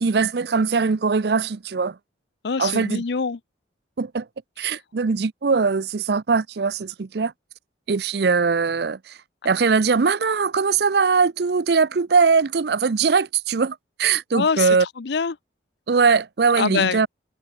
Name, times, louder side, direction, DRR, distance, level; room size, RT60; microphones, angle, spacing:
voice 1, 0.0-1.9 2.6-3.0 4.0-4.2 4.6-7.3 7.9-9.1 9.4-14.9 15.9-17.1, right 5 dB, 55° right, 0.5 m, -21 dB
voice 2, 2.4-3.4 4.6-4.7 14.3-15.4 16.6-17.1, left 5 dB, 60° left, 0.6 m, -24 dB
head